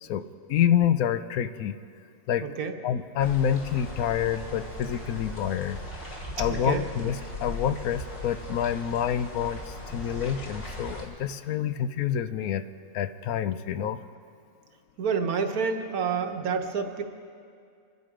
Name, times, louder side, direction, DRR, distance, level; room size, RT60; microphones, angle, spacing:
voice 1, 0.0-1.8 2.3-2.5 2.8-5.8 6.4-12.6 12.9-14.0, left 9 dB, 80° left, 11 dB, 1.1 m, -27 dB
voice 2, 2.4-2.7 6.5-6.8 15.0-17.0, right 6 dB, 80° right, 5 dB, 1.6 m, -28 dB
sound 1, 3.2-11.0, left 1 dB, 55° left, 2.7 m, -39 dB
26.0 x 11.0 x 5.0 m, 2.3 s
omnidirectional pair, 1.5 m